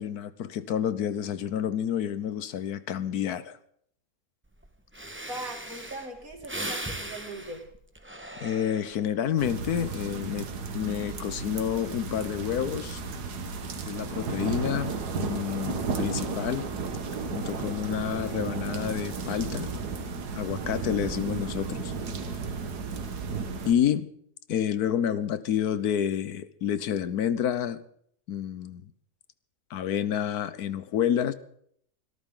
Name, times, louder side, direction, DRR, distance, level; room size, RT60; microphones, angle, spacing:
voice 1, 0.0-3.6 8.4-10.5 10.7-13.0 13.8-16.7 17.3-19.7 20.3-21.9 23.6-24.1 24.5-27.8 28.3-28.8 29.7-31.3, left 9 dB, 80° left, 14 dB, 1.4 m, -29 dB
Breathing, 4.6-4.7 4.9-9.2 9.7-10.0, right 1 dB, 10° right, 1.2 m, -39 dB
voice 2, 5.3-7.6, right 1 dB, 60° right, 3 dB, 3.0 m, -39 dB
sound 1, 9.4-23.7, right 4 dB, 85° right, 1.9 m, -34 dB
25.0 x 13.5 x 3.8 m, 0.66 s
omnidirectional pair, 1.6 m